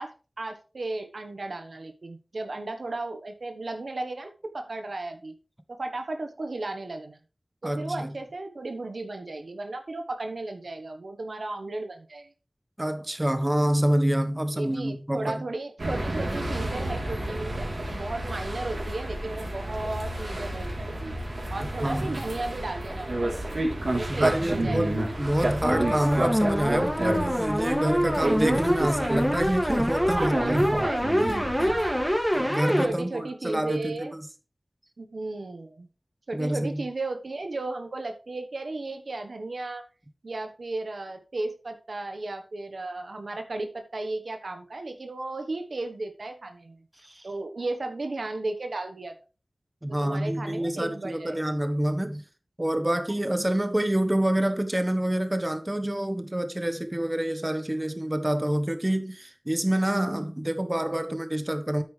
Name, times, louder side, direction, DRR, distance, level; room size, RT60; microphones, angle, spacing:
voice 1, 0.0-5.3 5.7-7.2 7.6-12.3 14.5-21.2 21.5-23.6 24.0-25.2 30.1-32.2 32.8-34.2 35.0-35.9 36.3-39.8 40.2-46.8 47.2-49.2 49.9-51.4, right 2 dB, 90° right, 1.2 m, -35 dB
voice 2, 7.6-8.1 12.8-15.3 21.8-22.2 24.1-30.9 31.2-31.4 32.3-34.1 36.3-36.8 47.0-47.3 49.8-52.2 52.6-61.8, right 1 dB, 25° right, 1.2 m, -27 dB
sound 1, 15.8-32.5, right 1 dB, 75° right, 3.5 m, -31 dB
sound 2, 25.6-32.9, equal, ahead, 2.2 m, -26 dB
9.6 x 8.7 x 3.3 m
wide cardioid pair, 50°, 0 cm